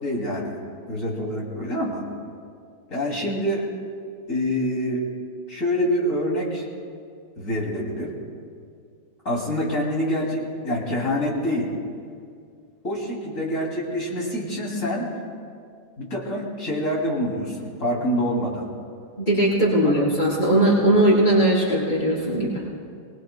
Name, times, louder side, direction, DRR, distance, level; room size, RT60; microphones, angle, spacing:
voice 1, 0.0-2.0 2.9-3.7 4.3-5.1 5.5-6.6 7.4-8.1 9.2-11.7 12.8-15.1 16.0-18.7 19.8-19.9, equal, 50° left, -2 dB, 3.2 m, -26 dB
voice 2, 19.2-22.6, right 1 dB, 25° left, -7 dB, 4.9 m, -19 dB
24.0 x 21.0 x 2.2 m, 2.3 s
omnidirectional pair, 1.8 m